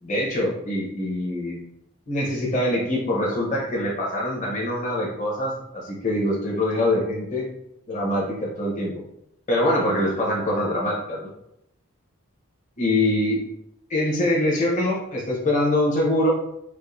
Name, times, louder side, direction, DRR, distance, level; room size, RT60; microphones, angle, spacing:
voice 1, 0.0-1.6 2.1-7.5 7.9-8.9 9.5-11.3 12.8-13.4 13.9-16.3, left 1 dB, 35° left, -4 dB, 0.8 m, -24 dB
4.5 x 2.5 x 2.5 m, 0.79 s
head